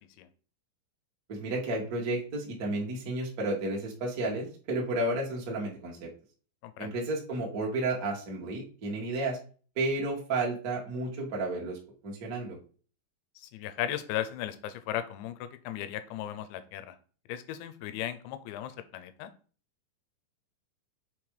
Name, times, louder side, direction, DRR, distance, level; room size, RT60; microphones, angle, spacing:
voice 1, 1.3-6.1 6.8-9.4 9.7-11.8 12.0-12.6, right 2 dB, 75° right, -2 dB, 0.8 m, -32 dB
voice 2, 6.6-6.9 13.4-17.0 17.3-19.3, left 12 dB, 85° left, 11 dB, 3.0 m, -36 dB
7.6 x 3.7 x 4.8 m, 0.40 s
omnidirectional pair, 5.0 m